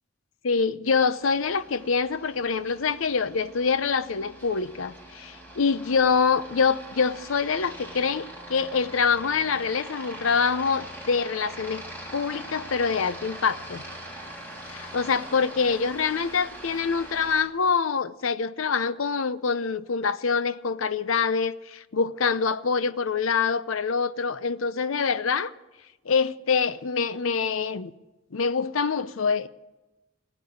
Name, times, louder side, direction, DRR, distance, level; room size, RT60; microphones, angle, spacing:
voice 1, 0.4-11.8 12.1-13.8 14.7-25.5 26.1-27.9 28.3-29.5, left 5 dB, 85° left, 0.6 m, -25 dB
Aircraft, 1.1-17.4, right 1 dB, 10° left, 3.1 m, -42 dB
15.5 x 9.0 x 9.7 m
head